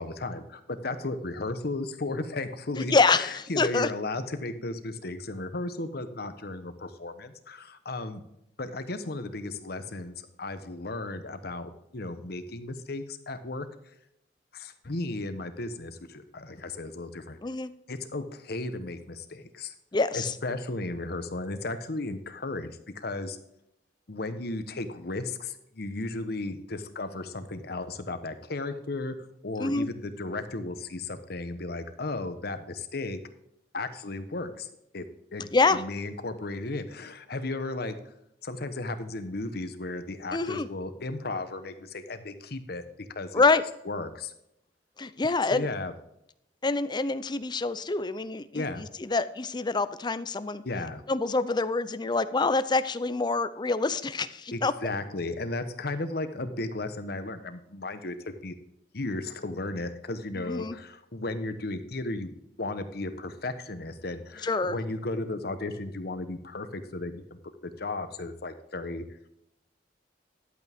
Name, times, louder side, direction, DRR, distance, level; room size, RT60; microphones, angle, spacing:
voice 1, 0.0-8.2 8.6-13.7 14.5-17.4 17.9-19.7 20.1-23.4 24.1-33.2 33.7-34.7 34.9-37.9 38.4-42.8 43.1-43.4 43.8-44.3 45.5-45.9 48.5-48.8 50.6-51.0 54.5-58.5 58.9-62.3 62.6-67.4 67.8-69.0, left 2 dB, 60° left, 10 dB, 1.0 m, -35 dB
voice 2, 2.8-3.9 17.4-17.7 19.9-20.3 29.6-29.9 35.5-35.8 40.3-40.7 43.3-43.6 45.0-45.6 46.6-50.6 51.1-54.7 60.5-60.8 64.4-64.8, left 3 dB, 25° left, 14 dB, 0.5 m, -26 dB
11.5 x 8.3 x 3.6 m, 0.80 s
head